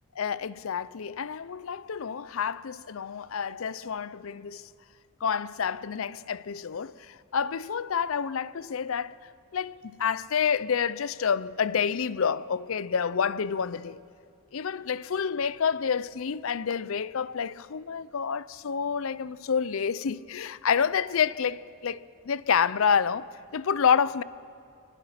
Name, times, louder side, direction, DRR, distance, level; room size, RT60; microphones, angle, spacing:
voice 1, 0.2-4.7 5.2-9.2 9.5-14.0 14.5-24.2, left 7 dB, 70° left, 0.5 m, -28 dB
25.0 x 19.5 x 5.8 m
head